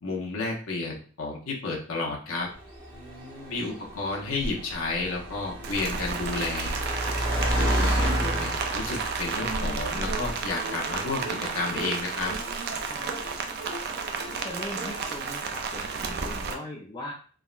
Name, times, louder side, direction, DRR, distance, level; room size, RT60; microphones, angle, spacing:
voice 1, 0.0-2.5 3.5-6.8 7.7-11.2 11.5-12.3, left 3 dB, 75° left, -2 dB, 0.8 m, -31 dB
Car, 2.5-10.5, right 1 dB, 20° right, 0.9 m, -30 dB
voice 2, 2.9-3.6 12.9-13.2 14.3-17.1, left 1 dB, 20° left, -4 dB, 0.4 m, -40 dB
Rain, 5.6-16.5, right 5 dB, 50° right, 0.4 m, -32 dB
sound 1, 9.3-15.3, right 3 dB, 80° right, 0.7 m, -40 dB
3.5 x 2.1 x 2.4 m, 0.42 s
head